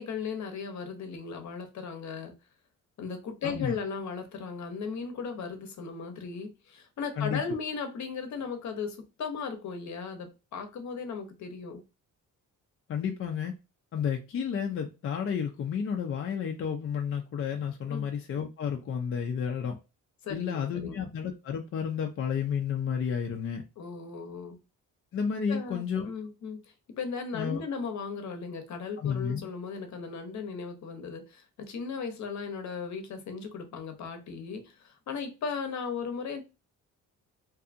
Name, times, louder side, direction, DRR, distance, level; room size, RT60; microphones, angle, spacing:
voice 1, 0.0-2.3 3.0-11.8 17.9-18.1 20.2-21.0 23.8-24.6 25.5-36.4, left 5 dB, 55° left, 0.8 m, -37 dB
voice 2, 3.4-3.8 7.2-7.4 12.9-13.5 13.9-19.8 20.3-23.6 25.1-26.1 27.3-27.6 29.0-29.5, left 7 dB, 40° left, 0.4 m, -31 dB
2.7 x 2.4 x 2.4 m
cardioid pair, 110°, 33 cm